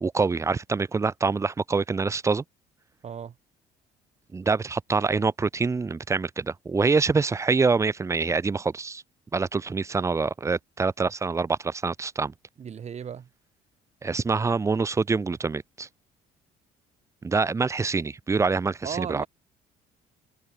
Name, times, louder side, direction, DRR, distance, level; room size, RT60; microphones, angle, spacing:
voice 1, 0.0-2.4 4.3-9.0 9.3-12.3 14.0-15.9 17.2-19.2, right 4 dB, 15° right, 0.5 m, -25 dB
voice 2, 3.0-3.3 12.6-13.3 18.8-19.3, right 8 dB, 40° right, 2.3 m, -35 dB
cardioid pair, 110°, 17 cm